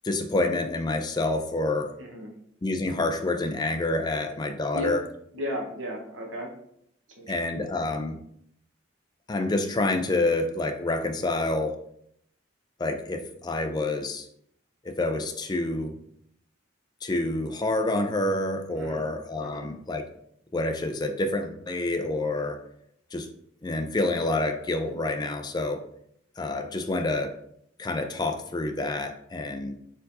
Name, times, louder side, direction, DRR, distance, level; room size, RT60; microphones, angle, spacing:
voice 1, 0.0-1.9 2.6-5.0 7.3-8.2 9.3-11.8 12.8-14.3 14.8-16.0 17.0-20.0 20.5-22.6 23.1-23.3 23.6-25.8 26.4-27.3 27.8-29.8, left 2 dB, 20° left, 6 dB, 0.4 m, -28 dB
voice 2, 2.0-2.3 4.7-4.9 5.3-6.5 7.2-7.7 18.7-19.1 19.4-19.7, equal, 80° right, 0 dB, 1.1 m, -35 dB
4.3 x 4.0 x 2.6 m, 0.71 s
head